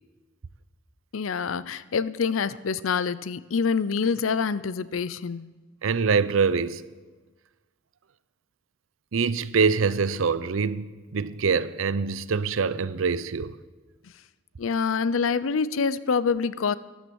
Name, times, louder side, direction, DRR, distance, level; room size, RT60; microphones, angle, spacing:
voice 1, 1.1-5.5 14.6-16.8, left 5 dB, 90° left, 0.5 m, -26 dB
voice 2, 5.8-6.8 9.1-13.6, right 5 dB, 85° right, 0.6 m, -24 dB
14.0 x 11.0 x 7.1 m
head